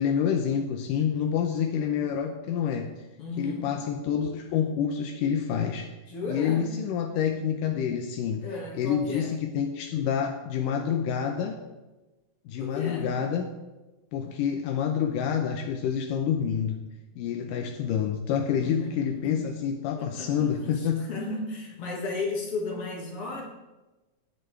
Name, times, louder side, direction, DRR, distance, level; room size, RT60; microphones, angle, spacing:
voice 1, 0.0-2.9 3.4-5.9 6.3-8.5 8.7-11.6 12.5-13.5 14.1-16.8 17.2-21.1, left 8 dB, 85° left, 4 dB, 2.4 m, -28 dB
voice 2, 1.5-2.1 3.2-3.7 6.1-6.7 8.4-9.3 12.6-13.1 18.6-19.4 20.0-23.5, left 3 dB, 50° left, 0 dB, 2.5 m, -35 dB
16.5 x 10.5 x 3.3 m, 1.1 s
omnidirectional pair, 3.7 m